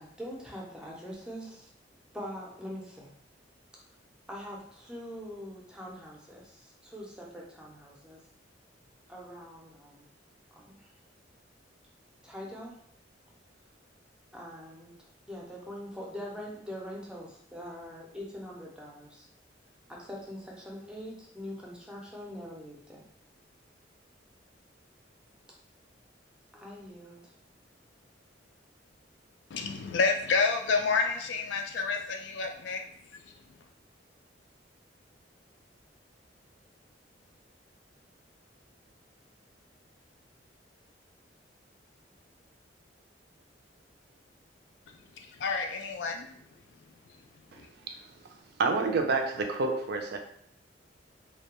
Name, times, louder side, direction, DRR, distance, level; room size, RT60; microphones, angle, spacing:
voice 1, 0.0-1.7 2.1-3.1 4.3-8.2 9.1-10.1 10.5-10.9 12.2-12.7 14.3-19.3 19.9-23.1 26.5-27.3, equal, 5° right, -3 dB, 0.5 m, -43 dB
voice 2, 29.5-32.8 45.4-46.3, left 4 dB, 70° left, 4 dB, 0.3 m, -29 dB
voice 3, 48.6-50.2, right 3 dB, 60° right, 4 dB, 0.4 m, -28 dB
2.2 x 2.1 x 2.9 m, 0.68 s
head